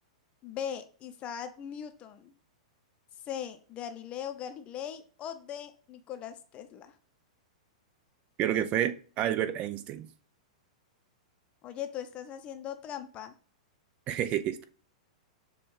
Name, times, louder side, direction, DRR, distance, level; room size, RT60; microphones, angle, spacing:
voice 1, 0.4-2.3 3.2-7.0 11.6-13.3, left 9 dB, 30° left, 9 dB, 0.6 m, -39 dB
voice 2, 8.4-10.1 14.1-14.6, right 11 dB, 35° right, 11 dB, 0.5 m, -29 dB
6.7 x 2.4 x 3.2 m, 0.41 s
hypercardioid pair, 110°, 4 cm